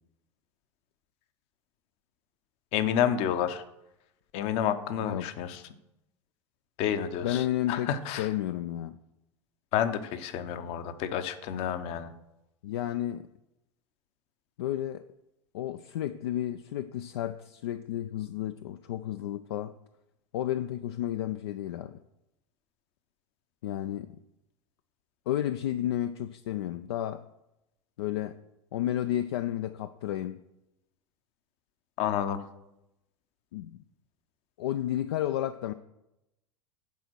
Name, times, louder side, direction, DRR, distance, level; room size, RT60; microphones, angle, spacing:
voice 1, 2.7-3.6 4.3-5.6 6.8-8.3 9.7-12.1 32.0-32.4, left 9 dB, 40° left, 0.8 m, -29 dB
voice 2, 7.2-9.0 12.6-13.3 14.6-15.0 15.5-19.7 20.3-22.0 23.6-24.2 25.3-27.2 28.0-28.4 28.7-30.4 33.5-33.8 34.6-35.7, left 12 dB, 60° left, 0.4 m, -32 dB
10.5 x 4.3 x 6.1 m
figure-of-eight pair, 80°, 15 cm